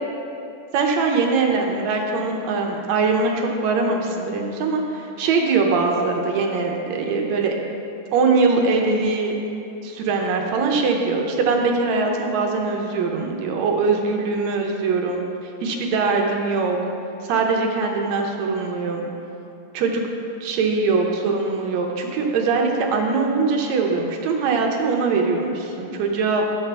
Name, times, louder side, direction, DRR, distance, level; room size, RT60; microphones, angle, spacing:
voice 1, 0.7-7.6 8.1-9.3 9.8-15.2 15.6-16.8 17.3-19.0 19.7-20.0 20.4-26.4, right 4 dB, 75° right, 2 dB, 1.9 m, -22 dB
10.5 x 7.0 x 3.3 m, 2.7 s
omnidirectional pair, 3.4 m